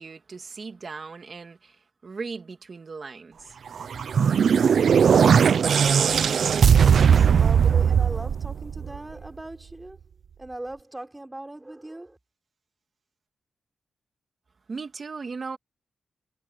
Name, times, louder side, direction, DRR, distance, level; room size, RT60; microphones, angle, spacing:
voice 1, 0.0-1.8 2.0-3.6 14.7-15.6, right 4 dB, 40° right, 2.8 m, -37 dB
sound 1, 3.8-9.1, right 7 dB, 65° right, 0.6 m, -19 dB
voice 2, 6.3-10.0 10.4-12.2, right 1 dB, 10° right, 4.9 m, -40 dB
wide cardioid pair, 155°, 0 cm